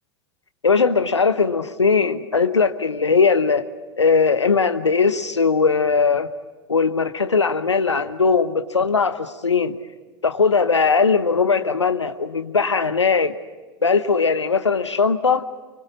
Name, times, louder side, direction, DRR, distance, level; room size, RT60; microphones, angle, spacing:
voice 1, 0.6-3.6 4.0-6.3 6.7-9.8 10.2-13.3 13.8-15.5, left 5 dB, 80° left, 1.0 m, -19 dB
25.0 x 25.0 x 8.5 m
figure-of-eight pair, 80°, 15 cm